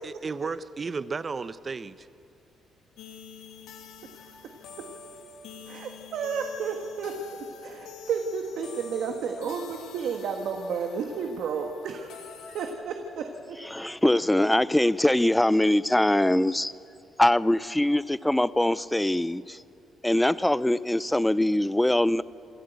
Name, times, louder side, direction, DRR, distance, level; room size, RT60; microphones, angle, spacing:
voice 1, 0.0-2.1, right 4 dB, 35° right, 15 dB, 0.7 m, -33 dB
sound 1, 3.0-12.7, left 4 dB, 85° left, 1.9 m, -46 dB
voice 2, 5.7-7.4 7.6-12.1 12.4-13.2, right 6 dB, 75° right, 3 dB, 1.5 m, -32 dB
voice 3, 13.6-16.7 17.2-19.6 20.0-22.2, left 1 dB, 5° left, 18 dB, 0.5 m, -23 dB
27.0 x 12.0 x 8.2 m, 2.8 s
cardioid pair, 90°, 0 cm